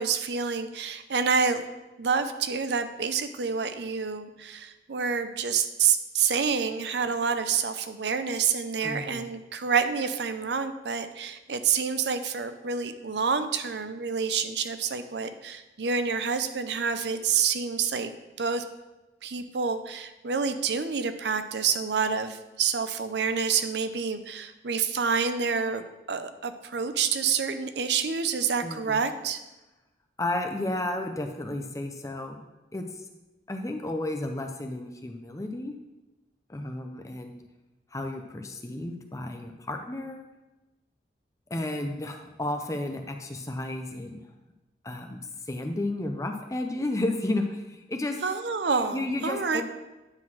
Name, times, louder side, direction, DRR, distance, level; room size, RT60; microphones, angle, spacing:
voice 1, 0.0-1.6 2.0-18.1 18.4-18.6 19.2-29.4 48.2-49.6, right 6 dB, 75° right, 9 dB, 0.6 m, -28 dB
voice 2, 8.8-9.2 28.6-29.0 30.2-32.4 32.7-32.9 33.5-35.7 36.5-37.4 37.9-40.3 41.5-44.2 44.8-45.2 45.5-48.2 48.9-49.6, left 1 dB, 20° left, 4 dB, 0.6 m, -32 dB
9.6 x 3.9 x 6.1 m, 1.0 s
head